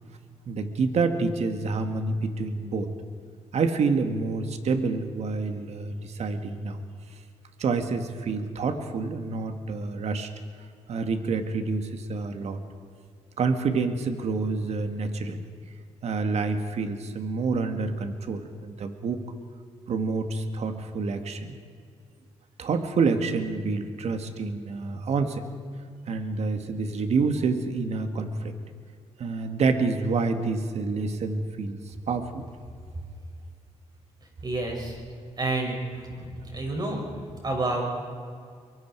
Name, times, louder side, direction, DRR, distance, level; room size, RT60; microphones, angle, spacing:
voice 1, 0.5-2.9 3.5-6.8 7.6-10.3 10.9-12.6 13.4-15.4 16.0-19.2 19.9-21.6 22.6-25.5 26.1-28.5 29.2-32.4, right 4 dB, 65° right, 7 dB, 1.9 m, -28 dB
voice 2, 34.4-35.0 35.4-36.3 36.5-37.0 37.4-37.8, right 2 dB, 35° right, 0 dB, 6.7 m, -29 dB
24.5 x 23.5 x 4.7 m, 2.2 s
cardioid pair, 100°, 12 cm